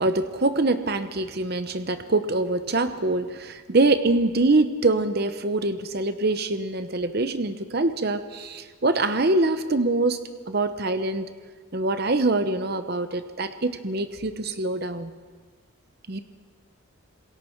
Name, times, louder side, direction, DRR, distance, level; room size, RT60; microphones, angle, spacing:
voice 1, 0.0-11.3 11.7-15.1 16.1-16.2, right 2 dB, 50° right, 10 dB, 0.9 m, -24 dB
27.0 x 21.5 x 4.6 m, 1.5 s
head